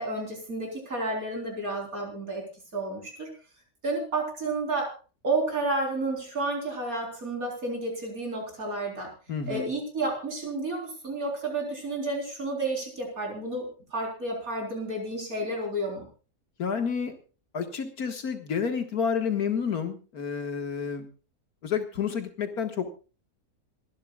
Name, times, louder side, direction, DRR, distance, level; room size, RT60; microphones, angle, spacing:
voice 1, 0.0-2.4 2.7-3.3 3.8-4.9 5.2-9.1 9.5-16.0, right 2 dB, 65° right, 1 dB, 4.5 m, -31 dB
voice 2, 9.3-9.7 16.6-17.2 17.5-21.1 21.6-22.9, left 6 dB, 75° left, 6 dB, 2.1 m, -30 dB
28.0 x 11.5 x 2.3 m, 0.35 s
omnidirectional pair, 1.6 m